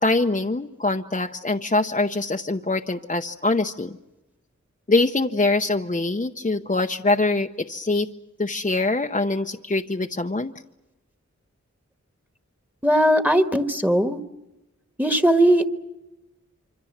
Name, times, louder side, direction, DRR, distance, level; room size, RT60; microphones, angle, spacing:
voice 1, 0.0-4.0 4.9-8.1 8.4-10.5, left 2 dB, 25° left, 4 dB, 0.8 m, -23 dB
voice 2, 12.8-14.2 15.0-15.6, right 1 dB, 5° right, 8 dB, 1.5 m, -19 dB
26.0 x 25.5 x 7.4 m, 0.97 s
wide cardioid pair, 55°, 30 cm